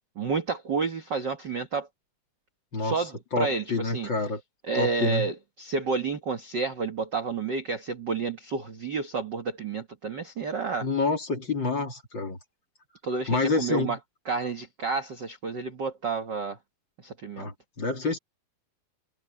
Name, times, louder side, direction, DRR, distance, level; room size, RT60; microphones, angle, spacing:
voice 1, 0.1-1.9 2.8-4.1 4.7-10.9 13.0-14.0 14.2-16.6 17.0-17.5, right 4 dB, 65° right, 1.0 m, -30 dB
voice 2, 3.3-4.4 4.7-5.3 10.8-12.4 13.3-14.0 17.4-18.2, left 3 dB, 30° left, 3.1 m, -28 dB
omnidirectional pair, 4.4 m